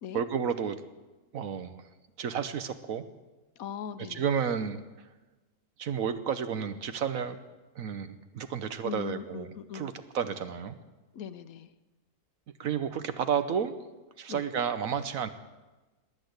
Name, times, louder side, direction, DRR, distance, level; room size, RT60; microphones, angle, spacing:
voice 1, 0.1-0.8 1.3-1.8 2.2-3.0 4.1-4.8 5.8-7.4 7.7-10.8 12.6-13.8 14.2-15.3, right 7 dB, 65° right, 11 dB, 1.3 m, -31 dB
voice 2, 3.6-4.2 8.8-9.9 11.1-11.7 14.3-14.4, left 8 dB, 70° left, 13 dB, 1.1 m, -39 dB
20.5 x 8.8 x 8.0 m, 1.1 s
omnidirectional pair, 1.6 m